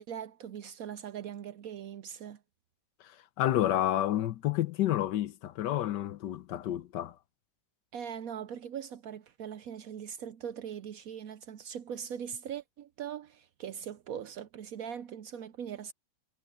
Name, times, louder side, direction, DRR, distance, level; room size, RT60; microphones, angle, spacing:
voice 1, 0.0-2.4 7.9-15.9, right 8 dB, 65° right, 0.9 m, -41 dB
voice 2, 3.0-7.1, left 13 dB, 80° left, 1.4 m, -30 dB
omnidirectional pair, 1.9 m